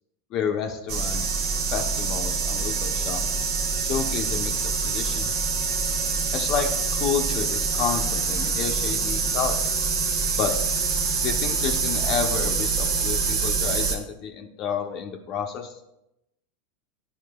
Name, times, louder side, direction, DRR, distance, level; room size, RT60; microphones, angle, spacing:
voice 1, 0.3-1.3 1.7-3.2 3.8-5.3 6.3-9.6 10.3-10.5 11.2-15.7, left 7 dB, 50° left, 3 dB, 0.6 m, -30 dB
sound 1, 0.9-13.9, right 5 dB, 60° right, 0.9 m, -25 dB
9.2 x 4.5 x 2.3 m, 0.86 s
hypercardioid pair, 90°, 0 cm